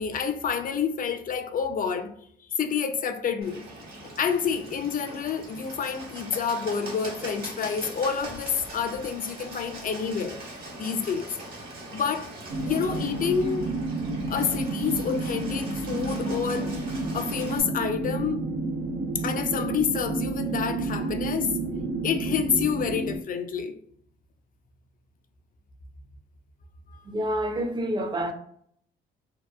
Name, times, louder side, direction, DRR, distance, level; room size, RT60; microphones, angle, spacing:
voice 1, 0.0-2.1 2.5-3.7 4.0-10.4 10.8-11.3 11.9-12.3 12.7-13.7 14.3-16.7 17.1-18.4 19.1-21.5 22.0-23.8, left 6 dB, 45° left, 0.4 m, -28 dB
Bird, 3.4-17.6, right 1 dB, 50° right, 1.1 m, -41 dB
sound 1, 12.5-23.2, right 2 dB, 75° right, 0.5 m, -30 dB
voice 2, 27.1-28.3, right 1 dB, 20° right, 0.5 m, -28 dB
2.7 x 2.3 x 2.2 m
cardioid pair, 90°, 20 cm